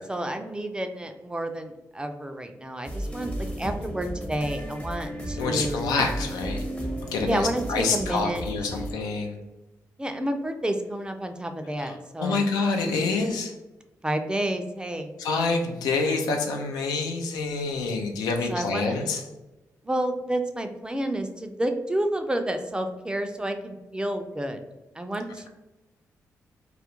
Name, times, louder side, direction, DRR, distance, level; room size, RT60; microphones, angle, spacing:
voice 1, 0.1-6.0 7.2-8.4 10.0-12.5 14.0-15.1 18.5-19.1 19.8-24.6 25.0-25.5, right 1 dB, 15° right, 6 dB, 0.4 m, -30 dB
sound 1, 2.8-8.9, right 1 dB, 20° left, 0.6 m, -34 dB
voice 2, 5.4-6.6 7.1-9.4 11.8-13.5 15.2-19.2, left 4 dB, 90° left, 3 dB, 0.4 m, -27 dB
2.3 x 2.0 x 2.9 m, 1.0 s
supercardioid pair, 55°, 7 cm